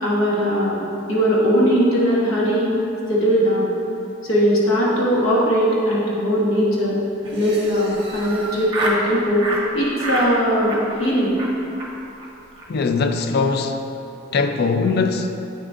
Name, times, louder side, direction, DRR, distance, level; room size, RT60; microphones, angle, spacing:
voice 1, 0.0-2.8 3.1-3.7 4.2-7.0 7.3-9.4 9.7-11.3, equal, 80° left, -6 dB, 1.4 m, -19 dB
Laughter, 7.2-9.0 9.4-9.6 10.0-10.3 10.6-11.1 11.4-11.5 11.8-11.9 12.2-12.3 12.5-12.7 12.9-13.3, right 2 dB, 25° right, 0.9 m, -28 dB
voice 2, 12.7-13.8 14.3-15.3, left 4 dB, 50° left, 7 dB, 0.4 m, -21 dB
8.8 x 6.1 x 2.4 m, 2.8 s
head